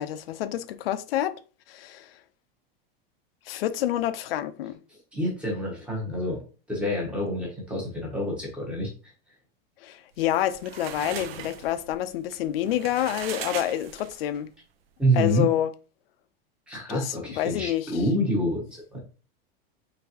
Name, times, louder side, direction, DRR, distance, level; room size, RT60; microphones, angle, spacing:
voice 1, 0.0-1.4 1.7-2.2 3.5-4.8 9.8-14.5 15.1-15.7 16.9-18.0, left 12 dB, 80° left, 0.5 m, -28 dB
voice 2, 5.1-6.4 6.7-8.9 15.0-15.5 16.7-19.0, equal, 5° right, 0.8 m, -27 dB
sound 1, 10.2-14.4, right 9 dB, 85° right, 0.6 m, -39 dB
3.9 x 3.3 x 2.8 m
supercardioid pair, 175°, 29 cm